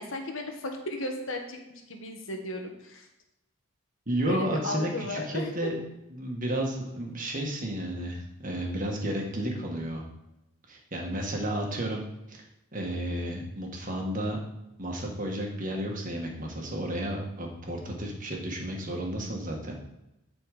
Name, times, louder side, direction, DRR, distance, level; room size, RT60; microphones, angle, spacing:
voice 1, 0.0-3.1 4.2-5.7, left 2 dB, 65° left, 4 dB, 1.4 m, -35 dB
voice 2, 4.1-5.8 6.1-10.0 10.7-12.0 12.3-12.4 12.7-14.4 14.8-19.8, right 1 dB, 40° right, 1 dB, 1.7 m, -32 dB
11.5 x 4.5 x 5.0 m, 0.92 s
head